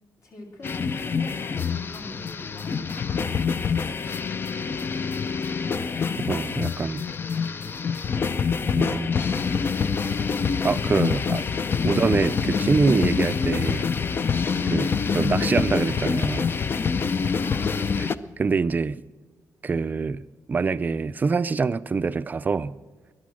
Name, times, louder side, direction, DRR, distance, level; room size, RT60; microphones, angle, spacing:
voice 1, 0.2-3.3 17.4-18.0, left 2 dB, 60° left, 4.0 m, -42 dB
sound 1, 0.6-18.1, left 5 dB, 35° left, 0.5 m, -26 dB
voice 2, 6.3-7.0 8.7-9.1 10.6-11.4 11.8-13.9 14.7-16.5 18.0-18.1 18.4-19.0 19.6-20.2 20.5-22.8, right 4 dB, 30° right, 0.4 m, -25 dB
20.0 x 11.5 x 6.2 m
wide cardioid pair, 155°, 6 cm